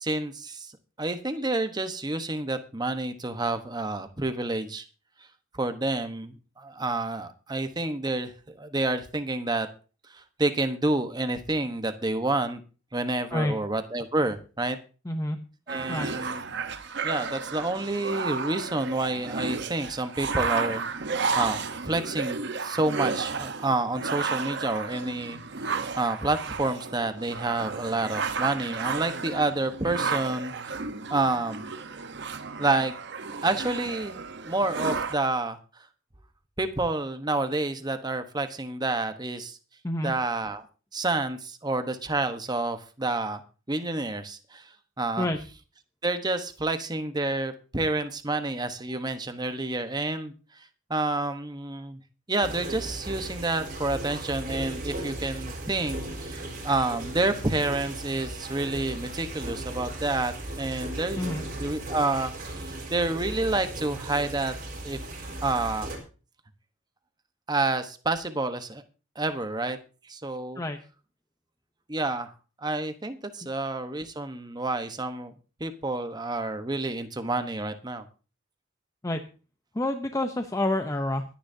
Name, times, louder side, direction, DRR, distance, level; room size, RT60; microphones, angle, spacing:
voice 1, 0.0-0.7 1.0-4.8 5.5-9.7 10.1-12.6 12.9-14.8 15.7-16.4 17.0-25.4 25.6-30.5 31.1-31.7 32.6-32.9 33.4-35.6 36.6-39.6 40.0-40.6 40.9-43.4 43.7-44.6 45.0-45.3 46.0-50.3 50.9-52.0 52.3-56.0 56.2-61.2 61.6-64.5 64.8-65.0 65.4-65.9 67.5-68.8 69.2-69.8 70.1-70.6 71.9-72.3 72.6-75.3 75.6-78.0, right 2 dB, 20° right, 9 dB, 1.1 m, -29 dB
voice 2, 15.1-15.4 15.9-16.1 39.8-40.1 45.2-45.4 61.2-61.4 70.6-70.8 79.0-79.2 79.7-81.2, left 1 dB, 15° left, 7 dB, 0.7 m, -28 dB
sound 1, 15.7-35.1, right 4 dB, 60° right, 1.0 m, -33 dB
sound 2, 52.4-66.0, right 1 dB, 45° right, 3.9 m, -37 dB
23.5 x 10.5 x 2.7 m, 0.36 s
head